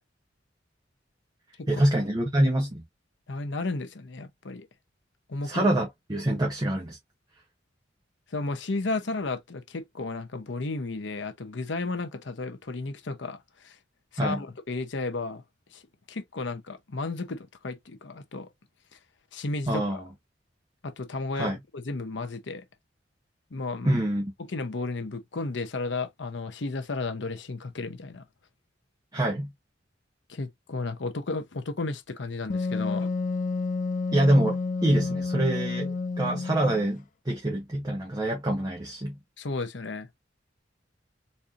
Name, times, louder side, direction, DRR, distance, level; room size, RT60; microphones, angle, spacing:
voice 1, 1.7-2.8 5.4-7.0 14.2-14.4 19.7-20.1 21.3-21.6 23.8-24.3 29.1-29.5 34.1-39.2, right 1 dB, 20° right, 1.0 m, -25 dB
voice 2, 3.3-4.7 5.3-5.7 8.3-13.8 14.1-15.4 15.7-15.8 16.1-18.5 19.3-20.0 20.8-22.6 23.5-24.0 24.4-28.2 30.3-33.1 39.4-40.1, left 3 dB, 75° left, 0.8 m, -33 dB
Wind instrument woodwind instrument, 32.5-36.9, left 4 dB, 45° left, 0.4 m, -30 dB
4.2 x 2.8 x 2.5 m
head